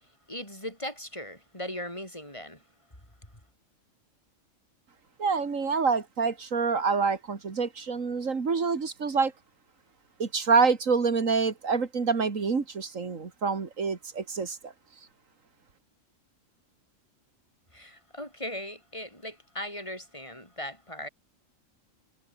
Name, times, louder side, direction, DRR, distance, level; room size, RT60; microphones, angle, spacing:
voice 1, 0.3-2.6 17.7-21.1, left 1 dB, 20° left, 8.1 m, -38 dB
voice 2, 5.2-9.3 10.2-14.7, right 5 dB, 75° right, 2.6 m, -27 dB
omnidirectional pair, 1.4 m